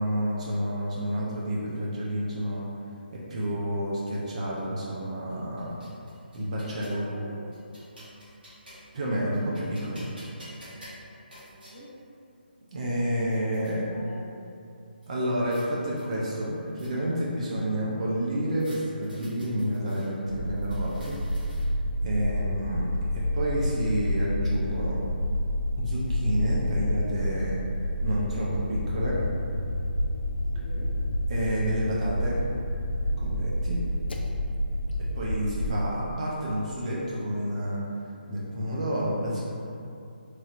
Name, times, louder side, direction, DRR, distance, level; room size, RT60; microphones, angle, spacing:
voice 1, 0.0-2.7 3.1-5.8 6.3-7.1 8.9-10.0 12.7-13.8 15.1-21.5 22.0-25.0 25.8-27.6 28.0-29.2 31.3-32.4 33.0-33.8 35.1-37.8 38.3-39.4, equal, 40° right, -6 dB, 0.5 m, -29 dB
sound 1, 5.3-7.0 7.5-9.0 9.3-11.8 12.5-12.6 12.9-13.7 15.0-15.7 16.0-17.2 18.6-20.1 20.6-21.9, equal, 65° right, 1.2 m, -51 dB
voice 2, 6.7-7.5 11.3-12.0 13.4-14.3 30.5-30.9 35.2-35.8, equal, 25° left, -11 dB, 0.9 m, -47 dB
sound 2, 20.3-35.7, equal, 70° left, 0.3 m, -29 dB
3.1 x 2.7 x 2.4 m, 2.5 s
figure-of-eight pair, 155°, 6 cm